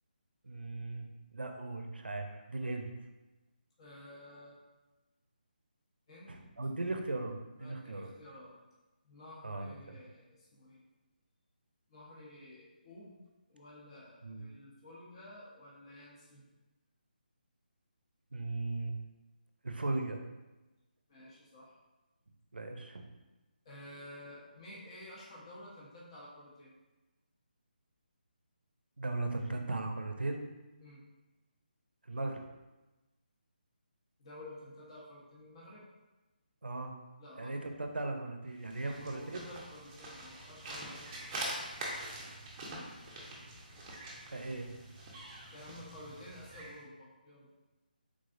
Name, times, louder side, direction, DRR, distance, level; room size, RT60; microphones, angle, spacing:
voice 1, 0.4-2.9 6.3-8.1 9.4-10.0 14.2-14.4 18.3-18.9 19.6-20.2 22.5-23.0 29.0-30.4 32.1-32.4 36.6-36.9 37.4-39.4 44.3-44.7, right 2 dB, 85° right, 4 dB, 0.5 m, -37 dB
voice 2, 3.8-4.6 6.1-6.4 7.6-8.5 9.0-10.8 11.9-13.2 13.5-16.4 21.1-21.8 23.6-26.7 30.8-31.0 34.2-35.9 37.2-37.6 38.8-41.3 45.5-47.5, left 1 dB, 35° left, -6 dB, 1.0 m, -52 dB
sound 1, 38.5-46.8, right 1 dB, 20° right, 0.6 m, -44 dB
3.7 x 3.2 x 2.5 m, 1.1 s
figure-of-eight pair, 155°, 5 cm